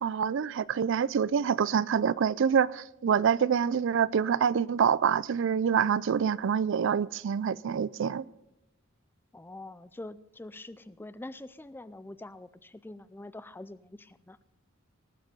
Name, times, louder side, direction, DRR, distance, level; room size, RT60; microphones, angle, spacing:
voice 1, 0.0-8.2, right 7 dB, 60° right, 0.4 m, -26 dB
voice 2, 9.3-14.4, left 2 dB, 10° left, 0.4 m, -45 dB
19.0 x 7.5 x 5.4 m
head